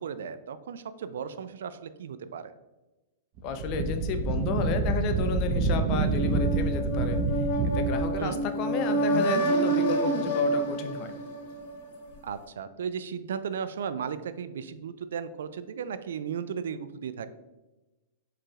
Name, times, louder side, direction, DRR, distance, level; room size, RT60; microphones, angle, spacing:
voice 1, 0.0-2.5 8.2-8.5 12.2-17.3, right 7 dB, 75° right, 12 dB, 0.3 m, -35 dB
voice 2, 3.4-7.2 7.7-11.1, left 5 dB, 45° left, 7 dB, 0.6 m, -32 dB
Wind, 3.4-8.2, right 4 dB, 45° right, 0.7 m, -27 dB
sound 1, 6.1-11.9, right 1 dB, 60° left, 0.9 m, -28 dB
4.7 x 4.7 x 2.4 m, 1.1 s
hypercardioid pair, 120°, 0 cm